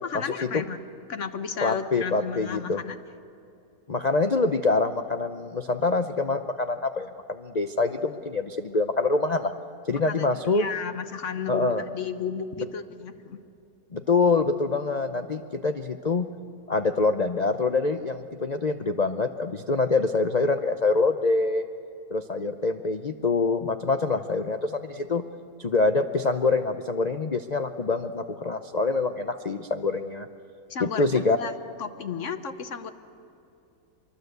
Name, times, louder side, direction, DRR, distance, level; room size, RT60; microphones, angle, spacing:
voice 1, 0.0-0.8 1.1-3.0 10.0-13.4 30.7-31.5 31.8-32.9, left 6 dB, 50° left, 10 dB, 1.1 m, -33 dB
voice 2, 1.6-2.8 3.9-9.5 9.9-10.7 11.5-11.8 13.9-16.3 16.7-21.6 22.1-25.2 25.6-30.3 30.8-31.4, left 3 dB, 70° left, 7 dB, 0.4 m, -25 dB
24.5 x 23.0 x 8.0 m, 2.6 s
omnidirectional pair, 1.9 m